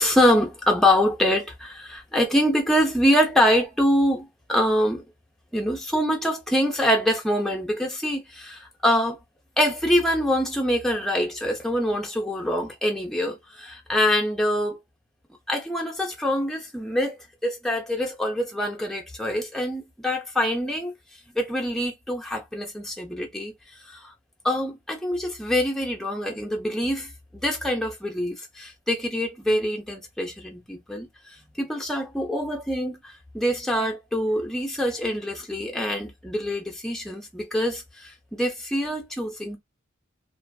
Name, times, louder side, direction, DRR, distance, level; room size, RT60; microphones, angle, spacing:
voice 1, 0.0-5.0 5.5-9.2 9.6-14.8 15.5-17.1 17.4-20.9 21.3-23.5 23.9-24.1 24.4-31.1 31.6-39.6, equal, ahead, 0.5 m, -25 dB
2.5 x 2.4 x 2.3 m
head